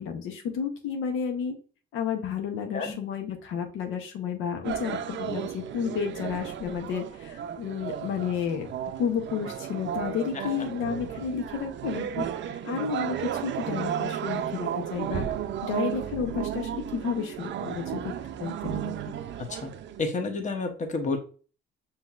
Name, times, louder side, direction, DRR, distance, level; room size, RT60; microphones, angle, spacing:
voice 1, 0.0-1.5 1.9-8.7 9.0-15.3 15.6-18.9, left 7 dB, 90° left, 4 dB, 0.7 m, -32 dB
sound 1, 4.6-20.1, right 10 dB, 65° right, 0.5 m, -34 dB
voice 2, 20.0-21.2, left 3 dB, 40° left, 4 dB, 0.9 m, -30 dB
5.5 x 2.8 x 2.3 m, 0.38 s
cardioid pair, 90°, 20 cm